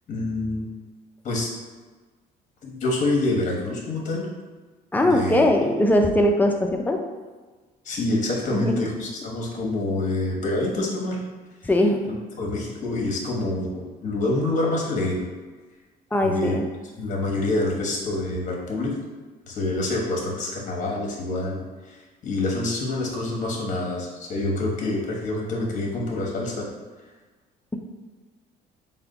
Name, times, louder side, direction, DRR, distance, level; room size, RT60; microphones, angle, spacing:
voice 1, 0.1-0.7 1.2-1.5 2.6-4.3 5.0-5.4 7.8-11.2 12.0-15.2 16.2-16.6 17.0-19.0 19.5-26.7, left 2 dB, 50° left, -2 dB, 1.1 m, -27 dB
voice 2, 4.9-7.0 8.5-8.8 11.6-12.0 16.1-16.7, left 1 dB, 10° left, 3 dB, 0.4 m, -20 dB
4.2 x 2.2 x 3.9 m, 1.3 s
cardioid pair, 110°, 17 cm